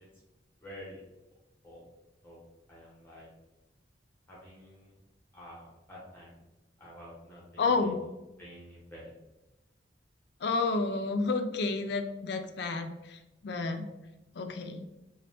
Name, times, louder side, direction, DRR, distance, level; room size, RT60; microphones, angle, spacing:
voice 1, 0.6-1.0 1.6-1.9 2.2-3.3 4.3-4.9 5.3-6.4 6.8-9.1, equal, 15° left, -5 dB, 0.8 m, -49 dB
voice 2, 7.6-8.0 10.4-13.9 14.3-14.8, left 3 dB, 70° left, 6 dB, 0.4 m, -30 dB
3.8 x 2.1 x 3.3 m, 1.0 s
head